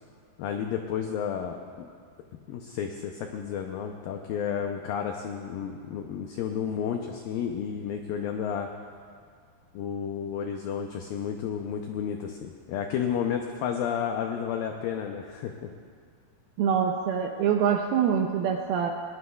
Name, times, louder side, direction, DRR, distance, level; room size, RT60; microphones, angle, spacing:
voice 1, 0.4-1.9 2.5-8.7 9.7-15.7, left 8 dB, 85° left, 3 dB, 2.0 m, -32 dB
voice 2, 16.6-18.9, right 8 dB, 80° right, 3 dB, 2.2 m, -25 dB
20.5 x 19.5 x 2.3 m, 2.1 s
omnidirectional pair, 4.9 m